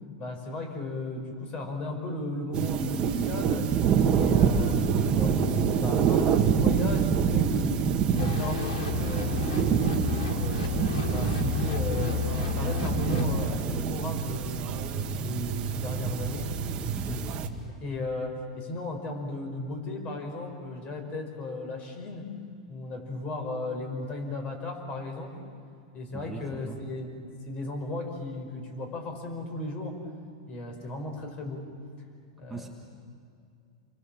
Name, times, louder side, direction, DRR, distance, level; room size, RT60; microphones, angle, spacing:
voice 1, 0.2-3.7 4.2-10.6 11.1-14.7 15.1-16.5 17.8-22.3 22.7-25.4 25.9-27.2 27.5-30.0 30.5-31.7 32.4-32.7, left 2 dB, 30° left, 5 dB, 5.3 m, -35 dB
sound 1, 2.5-17.5, right 7 dB, 30° right, 1.9 m, -26 dB
sound 2, 8.2-13.5, left 5 dB, 70° left, 3.5 m, -31 dB
voice 2, 17.0-17.3 26.1-26.8 32.5-32.7, right 3 dB, 5° right, 0 dB, 1.6 m, -38 dB
29.0 x 23.5 x 7.4 m, 2.4 s
hypercardioid pair, 135°, 4 cm